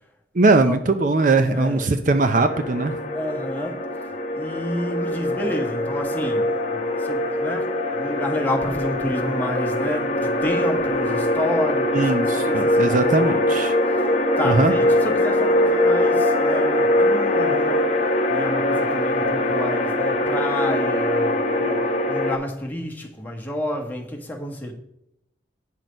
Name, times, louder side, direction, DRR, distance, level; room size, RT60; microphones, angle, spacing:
voice 1, 0.3-3.0 11.9-13.7 14.4-14.7, right 3 dB, 45° right, 0.6 m, -20 dB
voice 2, 1.5-2.0 3.1-3.9 4.3-13.5 14.0-24.7, left 1 dB, 10° left, 1.5 m, -30 dB
sound 1, 2.4-22.3, left 1 dB, 40° left, 1.0 m, -22 dB
9.1 x 6.3 x 5.2 m
head